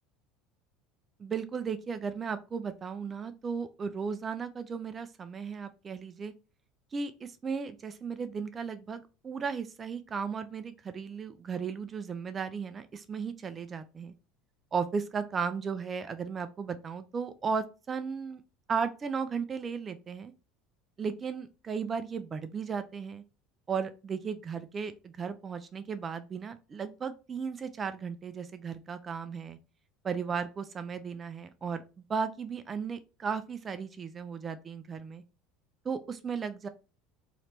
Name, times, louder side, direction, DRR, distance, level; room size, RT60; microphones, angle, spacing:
voice 1, 1.2-6.3 6.9-14.1 14.7-18.4 18.7-20.3 21.0-23.2 23.7-29.6 30.0-31.8 32.1-35.2 35.8-36.7, right 6 dB, 25° right, 0.4 m, -35 dB
3.2 x 2.9 x 4.3 m
supercardioid pair, 135°, 0 cm